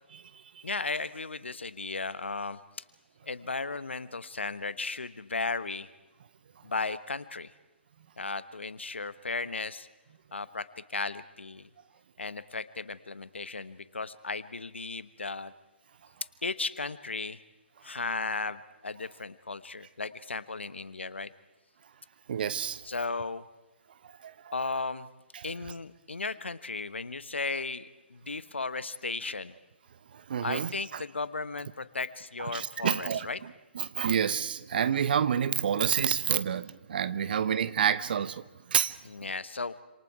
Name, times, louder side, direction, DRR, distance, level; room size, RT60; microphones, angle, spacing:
voice 1, 0.6-2.6 3.2-5.9 6.6-7.5 8.2-9.9 10.3-11.7 12.2-15.5 16.4-17.4 17.8-21.3 22.8-23.4 24.5-25.1 25.4-29.5 30.4-33.4 37.3-37.5 39.0-39.7, left 3 dB, 80° left, 15 dB, 1.1 m, -35 dB
voice 2, 22.3-22.8 24.2-24.3 25.3-25.4 30.1-31.0 32.4-33.3 33.7-38.4 38.7-39.0, right 8 dB, 55° right, 15 dB, 1.0 m, -28 dB
27.5 x 26.5 x 4.7 m, 1.1 s
figure-of-eight pair, 135°, 6 cm